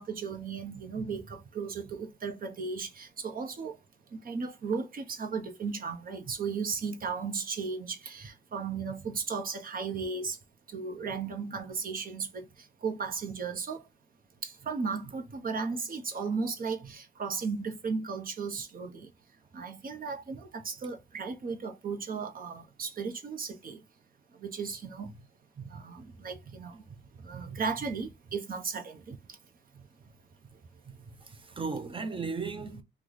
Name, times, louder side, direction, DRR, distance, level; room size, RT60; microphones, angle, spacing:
voice 1, 0.0-3.8 4.1-10.4 10.7-13.8 14.4-19.1 19.5-23.8 24.3-25.1 25.7-26.8 27.2-29.4, right 5 dB, 45° right, 1.0 m, -35 dB
voice 2, 31.6-32.8, right 4 dB, 25° right, 0.7 m, -36 dB
3.0 x 2.4 x 3.9 m
cardioid pair, 90°, 20 cm